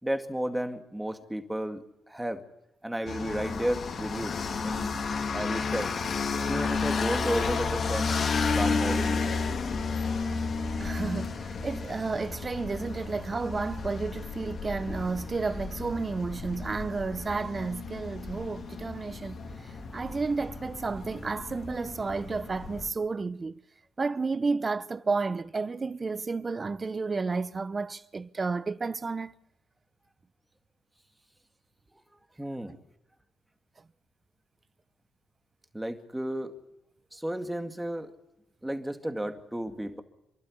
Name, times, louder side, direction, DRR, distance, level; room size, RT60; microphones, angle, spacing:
voice 1, 0.0-2.4 2.8-4.3 4.6-4.9 5.3-5.9 6.5-8.1 8.5-9.2 32.4-32.7 35.7-36.6 37.1-38.1 38.6-40.0, right 1 dB, 5° right, 2.2 m, -33 dB
sound 1, 3.1-22.9, left 4 dB, 50° left, 2.9 m, -32 dB
voice 2, 10.8-23.6 24.0-29.3, right 4 dB, 30° right, 0.8 m, -32 dB
27.0 x 12.0 x 10.0 m
cardioid pair, 90°, 0 cm